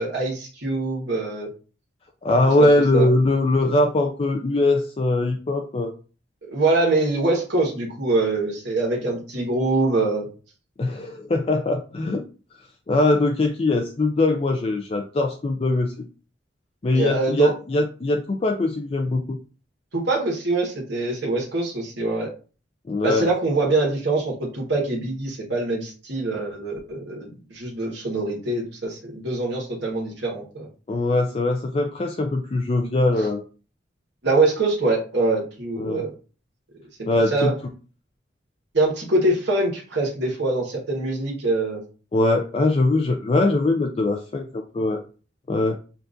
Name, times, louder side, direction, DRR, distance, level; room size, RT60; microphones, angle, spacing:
voice 1, 0.0-1.5 2.6-3.1 6.5-10.3 16.9-17.5 19.9-22.3 23.0-30.7 33.1-33.3 34.2-36.1 37.3-37.5 38.7-41.8, right 2 dB, 65° right, -2 dB, 1.4 m, -24 dB
voice 2, 2.2-5.9 10.8-12.2 12.9-15.9 16.8-19.4 22.9-23.3 30.9-33.4 35.8-36.1 37.1-37.5 42.1-45.0 45.5-45.8, left 2 dB, 30° left, 3 dB, 0.4 m, -21 dB
7.0 x 2.5 x 2.5 m, 0.37 s
head